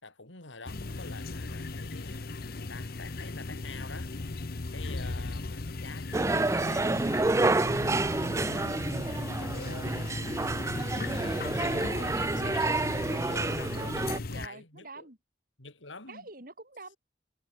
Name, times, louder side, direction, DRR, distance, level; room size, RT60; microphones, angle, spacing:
voice 1, 0.0-4.1 4.7-6.9 7.5-14.0 14.3-15.1 15.6-16.3, left 3 dB, 90° left, 5.4 m, -47 dB
sound 1, 0.7-14.5, left 3 dB, 50° left, 0.8 m, -37 dB
sound 2, 6.1-14.2, right 2 dB, 15° right, 0.4 m, -29 dB
voice 2, 13.7-15.2 16.1-17.0, right 2 dB, 50° right, 5.4 m, -46 dB
head